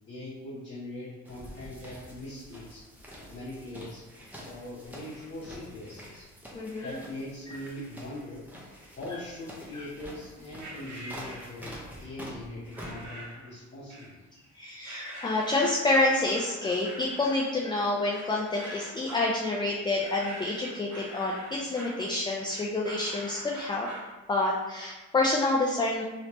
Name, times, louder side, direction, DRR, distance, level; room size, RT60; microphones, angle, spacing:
voice 1, 0.1-2.9 3.3-4.0 4.4-6.3 6.8-8.4 9.0-14.2, left 1 dB, 35° left, -10 dB, 1.1 m, -41 dB
sound 1, 1.2-13.1, equal, 5° right, 0.9 m, -47 dB
voice 2, 6.5-7.0 7.5-7.6 9.7-9.8 14.5-23.9 24.3-26.0, left 2 dB, 15° left, -2 dB, 0.4 m, -28 dB
sound 2, 10.6-11.9 12.7-13.5 13.9-14.5 14.8-24.1, right 1 dB, 65° right, 1.3 m, -44 dB
3.1 x 2.9 x 3.1 m, 1.1 s
cardioid pair, 90°, 30 cm